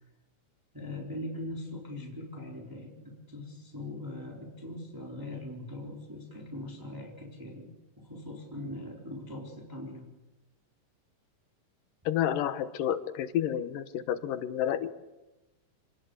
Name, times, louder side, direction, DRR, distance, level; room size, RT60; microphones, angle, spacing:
voice 1, 0.7-10.1, left 1 dB, 5° right, -1 dB, 3.9 m, -41 dB
voice 2, 12.1-14.9, left 10 dB, 85° left, 12 dB, 2.8 m, -30 dB
27.0 x 19.5 x 8.2 m, 1.0 s
omnidirectional pair, 3.8 m